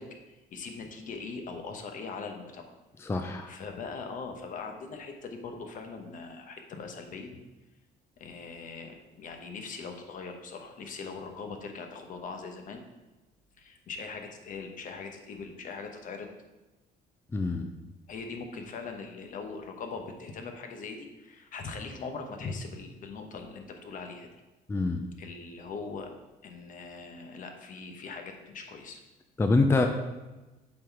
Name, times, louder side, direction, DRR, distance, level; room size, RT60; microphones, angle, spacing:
voice 1, 0.0-2.7 3.5-7.4 8.2-12.8 13.6-16.3 18.1-24.3 25.2-26.1 26.4-29.0, left 4 dB, 50° left, 4 dB, 1.0 m, -41 dB
voice 2, 3.0-3.5 17.3-17.7 24.7-25.0 29.4-29.9, left 3 dB, 15° left, 5 dB, 0.4 m, -25 dB
7.6 x 3.9 x 4.6 m, 1.1 s
cardioid pair, 110°, 17 cm